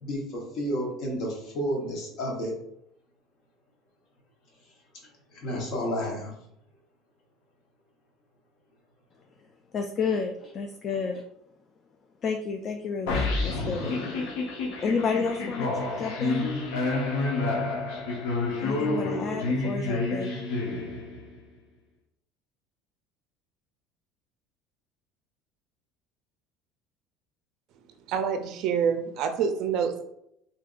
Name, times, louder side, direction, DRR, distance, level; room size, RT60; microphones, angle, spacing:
voice 1, 0.0-2.6 5.3-6.3, equal, 60° left, -1 dB, 1.0 m, -31 dB
voice 2, 9.7-11.2 12.2-13.9 14.5-16.5 18.6-20.4, left 5 dB, 40° left, 4 dB, 0.3 m, -31 dB
sound 1, 13.1-21.4, left 3 dB, 90° left, 0.7 m, -29 dB
voice 3, 28.1-30.0, right 7 dB, 60° right, 7 dB, 0.4 m, -27 dB
3.5 x 2.7 x 2.4 m, 0.76 s
supercardioid pair, 120°, 0 cm